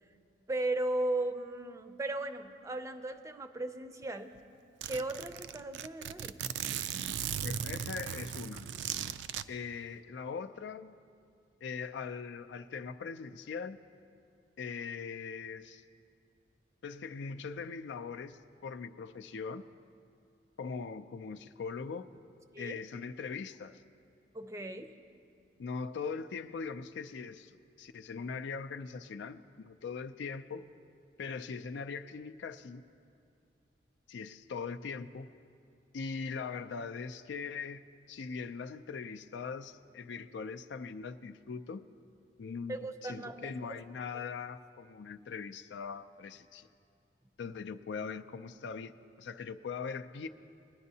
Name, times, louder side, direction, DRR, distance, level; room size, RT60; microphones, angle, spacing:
voice 1, 0.5-4.3 4.8-6.4 22.5-22.8 24.3-24.9 42.7-43.8 44.1-44.2, right 2 dB, 20° right, 8 dB, 0.4 m, -36 dB
Zipper (clothing), 4.0-4.1 4.4-4.5 4.8-9.4, right 9 dB, 85° right, 0.3 m, -37 dB
voice 2, 7.4-8.7 9.5-11.0 11.6-13.8 14.6-15.8 16.8-19.6 20.6-22.1 22.6-23.8 25.6-30.6 31.2-32.8 34.1-35.3 35.9-41.9 42.4-46.7 47.4-48.9 49.2-50.3, left 5 dB, 85° left, 9 dB, 0.4 m, -41 dB
20.5 x 10.5 x 2.7 m, 2.4 s
head